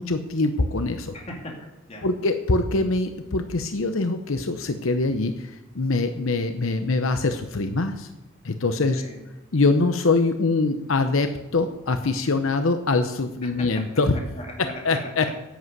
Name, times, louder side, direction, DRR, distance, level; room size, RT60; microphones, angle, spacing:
voice 1, 0.0-1.1 2.0-8.1 8.4-9.0 9.5-14.1 14.8-15.4, left 3 dB, 80° left, 8 dB, 0.8 m, -23 dB
voice 2, 1.1-2.1 8.9-9.2 13.4-13.5 14.1-15.3, left 1 dB, 30° left, 0 dB, 2.8 m, -39 dB
11.0 x 8.1 x 7.9 m, 1.0 s
head